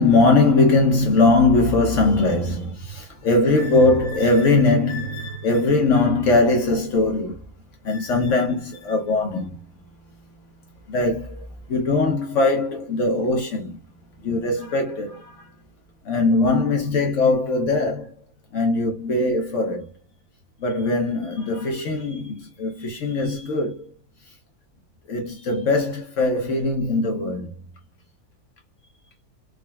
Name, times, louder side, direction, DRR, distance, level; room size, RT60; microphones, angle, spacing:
voice 1, 0.0-7.4 7.8-9.6 10.9-13.8 14.2-15.4 16.0-18.1 18.5-19.9 20.6-23.9 25.1-27.5, left 2 dB, 60° left, 0.8 m, -21 dB
3.6 x 2.2 x 2.2 m
omnidirectional pair, 1.7 m